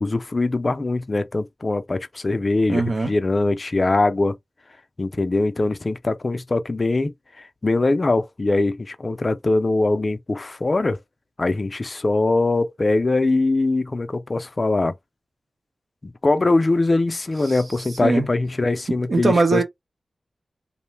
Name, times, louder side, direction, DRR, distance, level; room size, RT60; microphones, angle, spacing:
voice 1, 0.0-4.4 5.0-11.0 11.4-14.9 16.2-19.6, left 2 dB, 40° left, 0.4 m, -22 dB
voice 2, 2.7-3.1 17.4-17.6 18.0-18.3 19.1-19.6, right 3 dB, 65° right, 0.9 m, -20 dB
2.5 x 2.2 x 3.1 m
cardioid pair, 60°, 0 cm